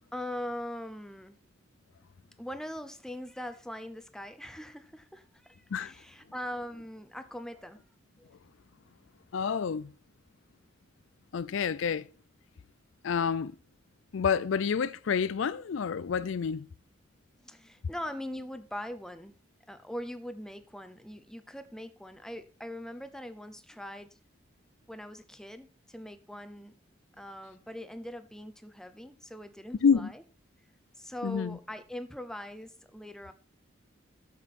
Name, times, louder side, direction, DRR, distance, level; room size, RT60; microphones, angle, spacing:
voice 1, 0.1-1.4 2.4-7.8 8.2-8.3 17.4-19.3 19.7-24.2 24.9-26.7 27.2-30.2 31.0-33.3, left 1 dB, 5° left, 0.6 m, -41 dB
voice 2, 9.3-9.9 11.3-12.1 13.0-13.5 14.1-16.7 29.8-30.1 31.2-31.6, left 6 dB, 80° left, 0.4 m, -28 dB
9.6 x 7.2 x 4.2 m
head